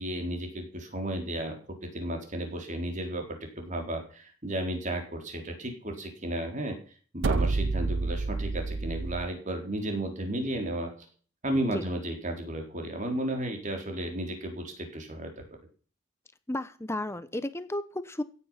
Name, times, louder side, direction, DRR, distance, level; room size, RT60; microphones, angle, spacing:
voice 1, 0.0-1.6 1.8-6.8 7.1-10.9 11.4-15.5, right 1 dB, 35° right, 3 dB, 4.2 m, -33 dB
sound 1, 7.2-9.3, right 3 dB, 60° right, 0.6 m, -29 dB
voice 2, 16.5-18.2, left 1 dB, 10° left, 12 dB, 0.9 m, -33 dB
16.5 x 9.8 x 5.8 m, 0.41 s
head